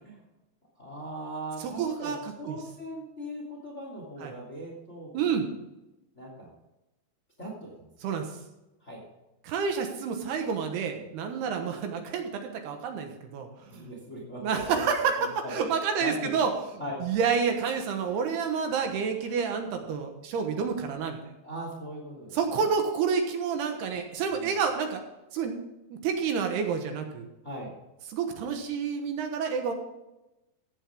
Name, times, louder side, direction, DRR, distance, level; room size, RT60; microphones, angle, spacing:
voice 1, 0.8-5.4 6.1-6.5 7.4-7.9 8.8-9.0 10.9-11.1 13.7-14.8 15.2-15.7 16.0-16.3 16.8-17.0 21.4-22.7 24.3-24.6 27.4-27.7, equal, 20° left, -1 dB, 2.6 m, -39 dB
voice 2, 1.8-2.2 2.4-2.6 4.2-4.3 5.1-5.4 8.0-8.3 9.4-13.5 13.7-13.9 14.4-16.5 17.0-21.2 22.3-25.0 25.3-25.6 25.9-27.3 28.1-29.7, right 6 dB, 75° right, 5 dB, 3.1 m, -29 dB
15.0 x 9.9 x 3.6 m, 0.97 s
omnidirectional pair, 5.0 m